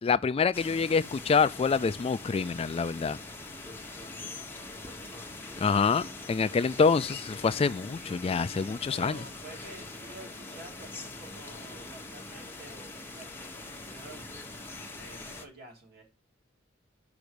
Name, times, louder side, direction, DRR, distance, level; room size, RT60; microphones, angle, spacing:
voice 1, 0.0-3.2 5.6-9.2, left 5 dB, 30° left, 0.3 m, -26 dB
sound 1, 0.5-15.4, left 2 dB, 10° left, 1.2 m, -43 dB
voice 2, 4.8-5.3 8.4-14.6 15.0-16.0, right 2 dB, 55° right, 3.3 m, -50 dB
5.9 x 5.2 x 6.7 m
head